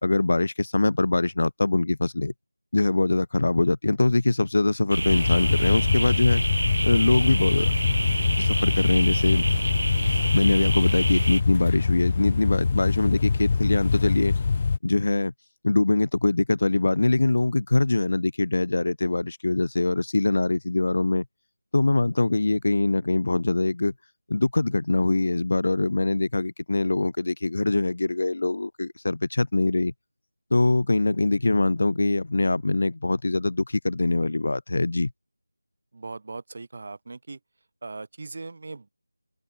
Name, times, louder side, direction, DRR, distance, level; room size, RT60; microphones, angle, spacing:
voice 1, 0.0-2.3 2.7-6.4 6.8-7.7 8.4-9.5 10.3-14.4 14.8-15.3 15.6-21.3 21.7-23.9 24.3-29.9 30.5-35.1, left 2 dB, 55° left, 1.7 m, -23 dB
sound 1, 4.9-11.4, right 1 dB, 90° right, 2.5 m, -27 dB
sound 2, 5.1-14.8, left 5 dB, 30° left, 1.5 m, -24 dB
voice 2, 35.9-37.4 37.8-38.9, right 3 dB, 40° right, 4.7 m, -39 dB
open air
figure-of-eight pair, 170°, 0 cm